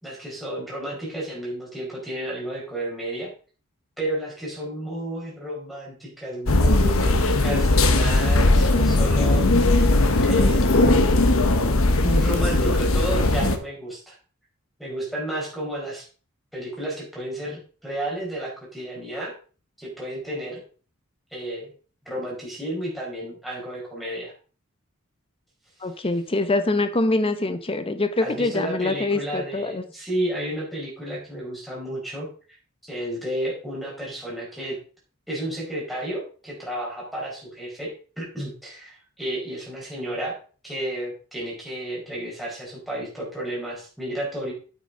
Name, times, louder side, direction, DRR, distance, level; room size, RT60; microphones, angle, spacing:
voice 1, 0.0-3.3 4.0-9.5 10.2-11.0 12.0-14.1 14.8-16.0 16.5-19.3 19.8-20.6 21.3-21.7 22.0-24.3 28.2-32.3 32.8-34.8 35.3-37.9 38.2-40.3 40.6-44.5, right 1 dB, ahead, -5 dB, 4.8 m, -32 dB
sound 1, 6.5-13.6, left 2 dB, 70° left, 1.0 m, -19 dB
voice 2, 25.8-29.8, left 2 dB, 25° left, 9 dB, 0.8 m, -24 dB
9.1 x 8.6 x 3.8 m, 0.38 s
head